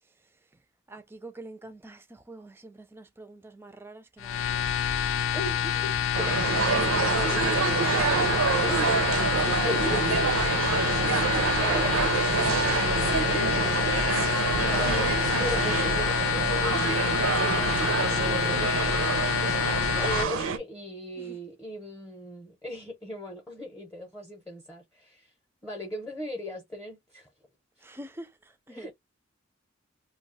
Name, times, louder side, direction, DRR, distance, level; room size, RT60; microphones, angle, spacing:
voice 1, 0.9-4.8 6.5-8.8 9.1-9.5 9.8-10.1 10.9-11.9 14.6-15.0 21.2-21.4 27.8-28.9, right 2 dB, 10° right, 0.3 m, -44 dB
sound 1, 4.2-20.2, left 9 dB, 80° left, 0.4 m, -27 dB
voice 2, 5.3-7.0 8.7-9.1 9.6-10.3 11.0-12.1 13.1-15.1 15.4-19.0 20.0-25.3 25.6-27.3 28.7-28.9, equal, 10° left, 0.7 m, -38 dB
sound 2, 6.1-20.6, right 5 dB, 80° right, 0.4 m, -27 dB
2.3 x 2.2 x 3.8 m
head